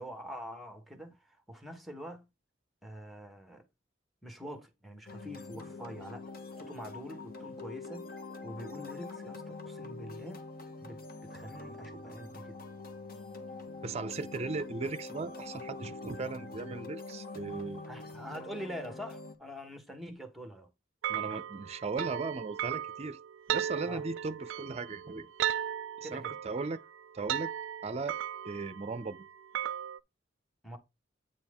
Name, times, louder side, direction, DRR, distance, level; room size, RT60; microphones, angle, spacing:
voice 1, 0.0-2.3 2.8-3.6 4.2-6.3 6.6-8.1 8.4-10.4 10.8-12.6 17.9-20.7 23.8-24.0 26.0-26.4 30.6-30.8, equal, ahead, 1.2 m, -45 dB
sound 1, 5.1-19.3, left 3 dB, 50° left, 1.2 m, -45 dB
voice 2, 13.8-17.9 21.1-23.2 23.5-25.3 26.0-26.8 27.1-27.5 27.8-28.2 28.4-29.2, right 3 dB, 35° right, 0.5 m, -37 dB
sound 2, 21.0-30.0, right 10 dB, 85° right, 0.3 m, -36 dB
8.8 x 4.5 x 3.5 m
head